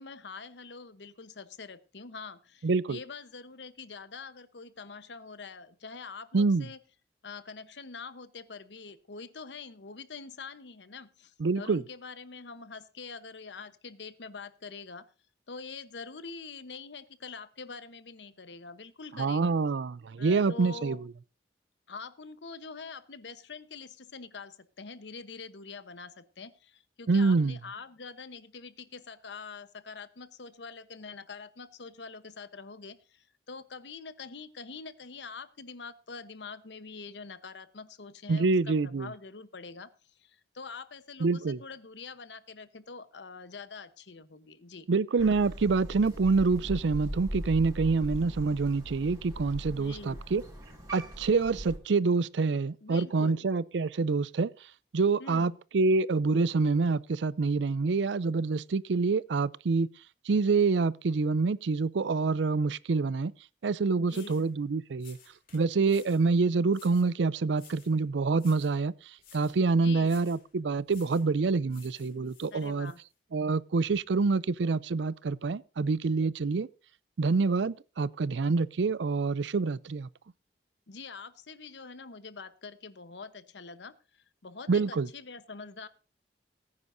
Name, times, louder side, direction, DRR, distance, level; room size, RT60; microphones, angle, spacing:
voice 1, 0.0-6.8 7.2-15.1 15.5-19.6 20.2-21.0 21.9-44.9 49.8-50.2 52.8-53.5 55.2-55.6 64.0-64.5 69.8-70.2 72.5-73.0 80.9-85.9, left 4 dB, 80° left, 1.0 m, -45 dB
voice 2, 2.6-3.0 6.3-6.7 11.4-11.8 19.2-21.0 27.1-27.6 38.3-39.1 41.2-41.6 44.9-50.4 50.9-54.5 54.9-59.9 60.3-63.3 63.6-65.2 65.5-68.9 69.3-72.9 73.3-76.7 77.2-80.1 84.7-85.1, right 4 dB, 85° right, 0.5 m, -26 dB
Crow, 45.2-51.8, equal, 20° right, 4.9 m, -40 dB
sound 1, 63.6-63.7 64.1-64.5 65.0-66.3 66.7-67.1 67.5-68.0 68.3-68.8 69.2-69.6 70.0-70.5 70.9-71.3 71.7-73.0, left 7 dB, 55° left, 3.2 m, -56 dB
19.0 x 9.7 x 2.6 m
head